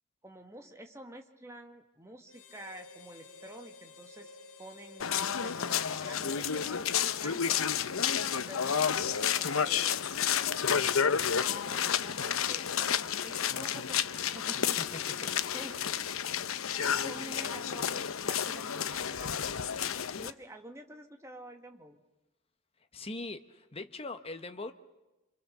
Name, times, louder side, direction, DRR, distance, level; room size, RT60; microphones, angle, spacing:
voice 1, 0.2-7.7 8.3-10.1 10.7-14.9 15.1-15.3 15.5-16.1 16.6-22.0, right 1 dB, 15° right, 5 dB, 1.9 m, -49 dB
Harmonica, 2.3-8.2, left 3 dB, 65° left, 2.3 m, -53 dB
sound 1, 5.0-20.3, left 8 dB, 85° left, 0.8 m, -31 dB
voice 2, 22.9-24.7, left 2 dB, 30° left, 8 dB, 1.1 m, -41 dB
28.0 x 26.0 x 6.8 m, 1.1 s
head